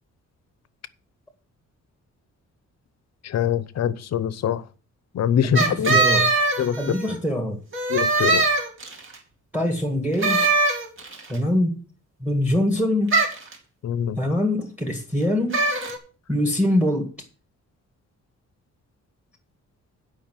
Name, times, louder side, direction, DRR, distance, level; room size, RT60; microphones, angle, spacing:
voice 1, 3.2-4.6 5.1-6.0 6.6-7.0 7.9-8.4 13.8-14.2, left 9 dB, 60° left, 0.8 m, -24 dB
voice 2, 5.4-6.3 6.8-7.6 9.5-10.5 11.3-11.8 12.2-13.2 14.2-15.6 16.3-17.1, left 1 dB, 5° right, 1.8 m, -23 dB
sound 1, 5.6-7.2 7.7-9.1 10.2-11.3 13.1-13.5 15.5-16.0, right 3 dB, 40° right, 2.4 m, -21 dB
10.0 x 5.6 x 7.5 m
wide cardioid pair, 165°, 30 cm